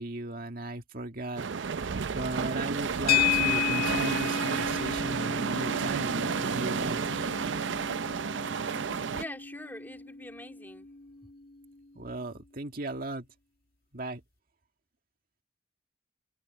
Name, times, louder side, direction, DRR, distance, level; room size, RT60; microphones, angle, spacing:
voice 1, 0.0-7.0 12.0-13.3 13.9-14.2, right 2 dB, 50° right, 2.0 m, -37 dB
sound 1, 1.4-9.2, right 6 dB, 85° right, 0.5 m, -31 dB
sound 2, 3.1-11.5, left 8 dB, 55° left, 2.4 m, -33 dB
voice 2, 9.0-10.9, left 1 dB, 10° left, 3.0 m, -43 dB
head